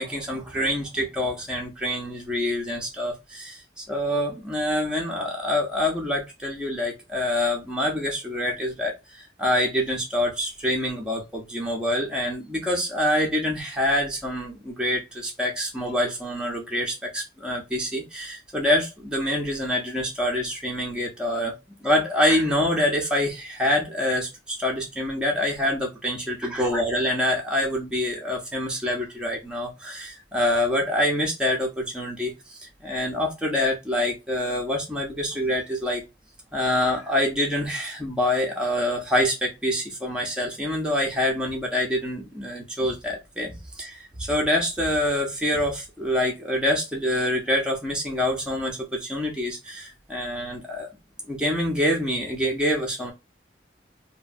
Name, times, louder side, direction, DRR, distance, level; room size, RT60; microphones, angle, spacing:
voice 1, 0.0-21.5 21.8-36.0 36.5-50.9 51.3-53.1, left 1 dB, 5° right, 0.7 m, -26 dB
2.9 x 2.2 x 2.5 m
head